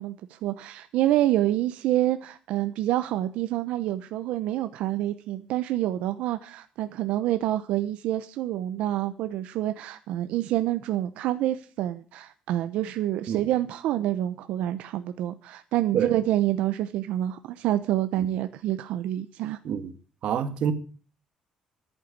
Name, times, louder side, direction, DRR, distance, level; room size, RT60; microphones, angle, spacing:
voice 1, 0.0-19.6, right 13 dB, 90° right, 0.8 m, -27 dB
voice 2, 20.2-20.7, right 8 dB, 60° right, 1.6 m, -25 dB
11.0 x 9.1 x 8.4 m
cardioid pair, 160°, 2 cm